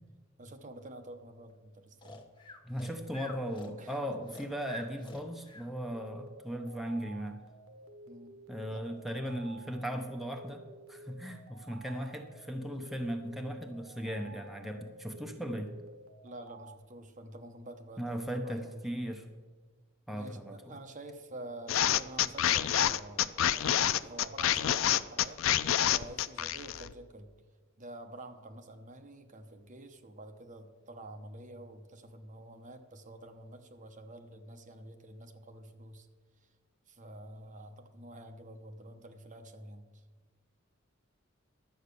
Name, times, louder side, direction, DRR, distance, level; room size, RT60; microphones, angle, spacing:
voice 1, 0.4-2.3 3.8-4.2 8.1-8.4 8.7-8.8 16.2-18.8 20.1-25.4 25.9-27.3 27.8-36.1 36.9-40.0, right 1 dB, 40° right, 6 dB, 0.9 m, -48 dB
Breathing, 2.0-5.7, left 2 dB, 25° left, 1.1 m, -48 dB
voice 2, 2.6-7.4 8.5-15.7 18.0-19.3 20.1-20.7, equal, ahead, 4 dB, 0.8 m, -37 dB
sound 1, 5.9-16.8, right 2 dB, 75° right, 1.1 m, -53 dB
sound 2, 21.7-26.9, left 10 dB, 70° left, 0.4 m, -27 dB
11.5 x 7.9 x 6.8 m, 1.4 s
head